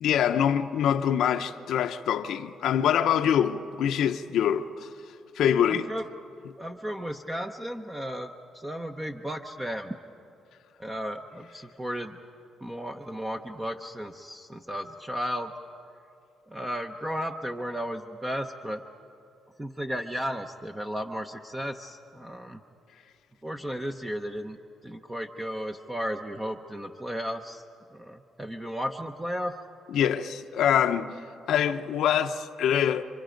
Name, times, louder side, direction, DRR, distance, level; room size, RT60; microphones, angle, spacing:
voice 1, 0.0-4.9 5.4-5.9 29.9-31.2 31.5-33.0, left 9 dB, 75° left, 0.7 m, -24 dB
voice 2, 5.7-6.1 6.6-9.9 10.8-12.2 12.6-15.5 16.5-18.8 19.6-22.6 23.4-24.6 24.8-27.6 27.9-29.5, equal, 15° right, 0.9 m, -34 dB
29.0 x 25.0 x 5.2 m
cardioid pair, 90°, 0 cm